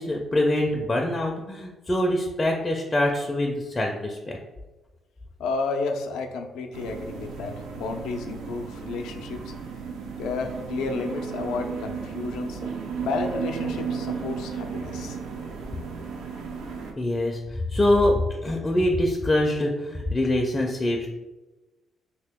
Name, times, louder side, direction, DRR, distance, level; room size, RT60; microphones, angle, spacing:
voice 1, 0.0-4.4 12.6-12.7 17.0-21.1, left 1 dB, 25° left, 0 dB, 0.4 m, -24 dB
voice 2, 5.4-9.4 10.2-12.6 13.0-15.2, left 4 dB, 85° left, 5 dB, 0.4 m, -31 dB
sound 1, 6.7-16.9, right 6 dB, 80° right, 0.4 m, -34 dB
2.9 x 2.8 x 3.4 m, 1.1 s
cardioid pair, 90°, 0 cm